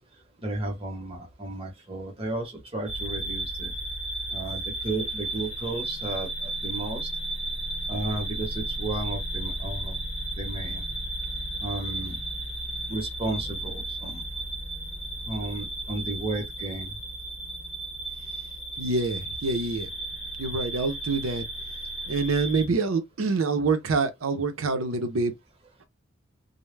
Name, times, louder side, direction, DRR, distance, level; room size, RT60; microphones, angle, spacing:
voice 1, 0.4-3.7 4.3-6.3 6.6-7.1 7.9-10.0 10.4-10.8 11.6-12.2 12.9-14.2 15.3-16.9, right 2 dB, 30° right, 0.9 m, -33 dB
sound 1, 2.9-22.7, right 1 dB, 25° left, 0.9 m, -34 dB
voice 2, 18.8-19.9 20.4-21.4 22.1-25.3, right 3 dB, 75° right, 0.6 m, -26 dB
2.2 x 2.0 x 3.1 m
head